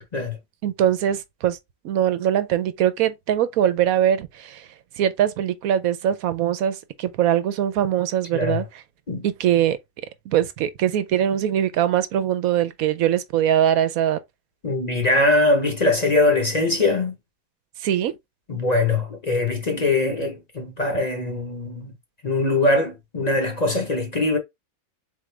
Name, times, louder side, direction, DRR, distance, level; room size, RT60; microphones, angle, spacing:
voice 1, 0.6-1.6 1.8-4.7 5.0-8.7 9.2-9.8 10.3-14.2 17.8-18.1, right 10 dB, 80° right, 1.1 m, -22 dB
voice 2, 8.3-8.6 9.1-9.2 14.6-17.1 18.5-21.9 22.2-24.4, left 2 dB, 35° left, 0.8 m, -22 dB
4.0 x 3.5 x 3.2 m
omnidirectional pair, 1.5 m